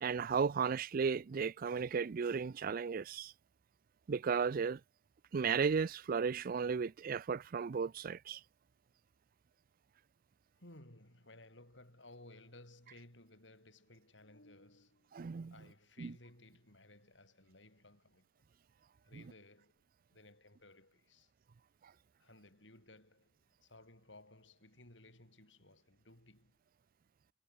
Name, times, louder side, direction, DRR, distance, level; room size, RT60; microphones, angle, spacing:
voice 1, 0.0-3.3 4.1-4.8 5.3-8.4 15.1-15.5 16.0-16.1, right 6 dB, 50° right, 0.4 m, -34 dB
voice 2, 10.6-15.1 15.5-18.5 19.0-19.8 20.1-21.3 22.2-26.6, left 2 dB, 70° left, 7.9 m, -59 dB
head